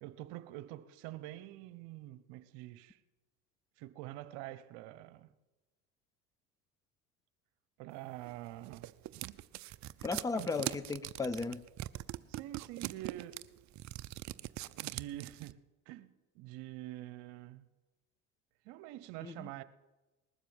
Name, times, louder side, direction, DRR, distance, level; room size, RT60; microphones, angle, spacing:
voice 1, 0.0-3.0 3.8-5.3 7.8-8.9 10.3-10.5 12.3-13.4 14.8-15.6 15.9-17.7 18.6-19.6, right 15 dB, 65° right, 1.0 m, -46 dB
sound 1, 8.3-15.5, right 16 dB, 40° right, 0.5 m, -42 dB
voice 2, 10.0-11.6 19.2-19.6, left 4 dB, 10° left, 0.5 m, -36 dB
20.0 x 7.5 x 7.2 m
supercardioid pair, 90°, 46 cm